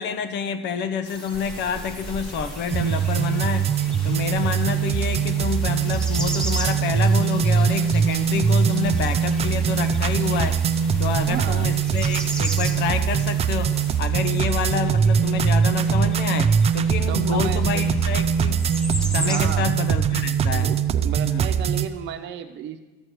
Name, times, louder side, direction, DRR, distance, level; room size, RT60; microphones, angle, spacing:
voice 1, 0.0-3.7 4.0-10.6 11.0-13.7 14.0-18.6 19.1-20.7 21.2-21.5, left 6 dB, 65° left, 10 dB, 0.8 m, -28 dB
sound 1, 1.0-14.0, left 1 dB, 25° left, 1.6 m, -43 dB
sound 2, 1.3-19.6, right 1 dB, 5° left, 0.9 m, -37 dB
sound 3, 2.7-21.9, right 7 dB, 30° right, 0.4 m, -22 dB
voice 2, 11.1-11.8 17.1-17.8 19.2-19.7 20.5-22.8, right 9 dB, 65° right, 7 dB, 0.9 m, -33 dB
13.0 x 4.7 x 7.9 m, 1.2 s
cardioid pair, 160°, 20 cm